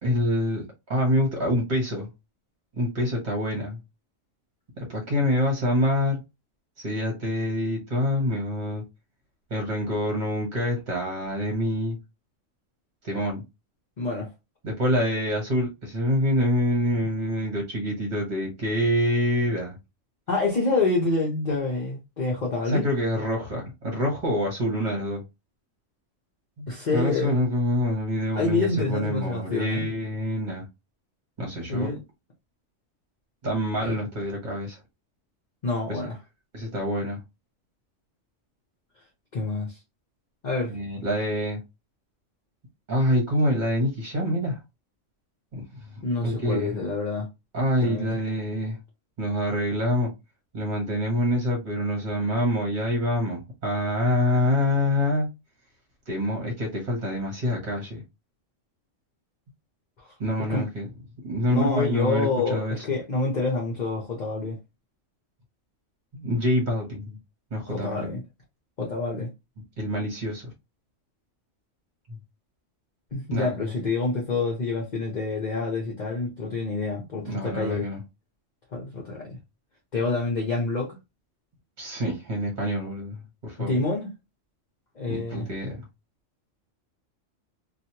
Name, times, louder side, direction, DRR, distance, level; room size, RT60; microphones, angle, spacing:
voice 1, 0.0-2.1 2.8-3.8 4.8-6.2 6.8-8.8 9.5-12.0 13.0-13.4 14.6-19.8 22.7-25.2 26.6-30.7 31.4-31.9 33.4-34.8 35.9-36.1 36.5-37.2 40.7-41.6 42.9-44.6 45.5-45.9 46.2-46.8 47.5-48.8 49.2-50.1 50.5-55.3 56.1-58.0 60.2-60.9 61.2-62.8 66.1-67.2 67.5-68.1 69.8-70.5 73.3-73.7 77.2-78.0 81.8-83.7 85.1-85.8, left 1 dB, 40° right, 1.0 m, -26 dB
voice 2, 14.0-14.3 20.3-22.9 26.7-27.3 28.3-29.8 31.7-32.0 33.8-34.0 35.6-36.2 39.3-39.8 40.4-40.7 46.0-47.3 47.8-48.1 60.0-60.1 60.5-60.6 61.5-64.6 67.7-68.2 68.8-69.3 73.1-77.9 78.7-79.4 79.9-81.0 83.6-84.1 84.9-85.5, left 3 dB, 40° left, 0.8 m, -27 dB
3.0 x 2.4 x 2.8 m
omnidirectional pair, 1.3 m